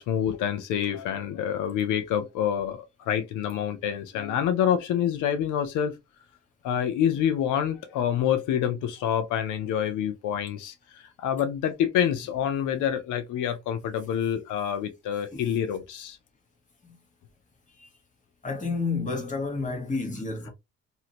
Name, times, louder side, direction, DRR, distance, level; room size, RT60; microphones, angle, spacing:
voice 1, 0.0-5.9 6.6-16.2, left 9 dB, 85° left, 0.5 m, -27 dB
voice 2, 18.4-20.5, left 4 dB, 25° left, 1.2 m, -30 dB
2.7 x 2.5 x 2.8 m
cardioid pair, 90°, 30 cm